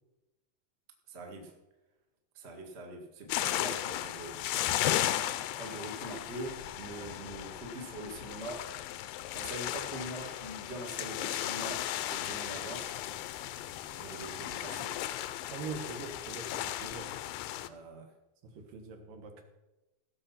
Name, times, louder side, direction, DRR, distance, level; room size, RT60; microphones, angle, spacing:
voice 1, 1.1-1.5 2.3-4.8 5.5-8.7 9.3-12.9 13.9-15.0 17.6-18.1, right 1 dB, 35° right, 2 dB, 0.9 m, -43 dB
sound 1, 3.3-17.7, left 13 dB, 80° left, 2.3 m, -35 dB
voice 2, 15.5-16.5 16.8-17.1 18.5-19.4, right 4 dB, 70° right, 4 dB, 3.0 m, -42 dB
16.5 x 6.9 x 5.7 m, 1.0 s
omnidirectional pair, 4.1 m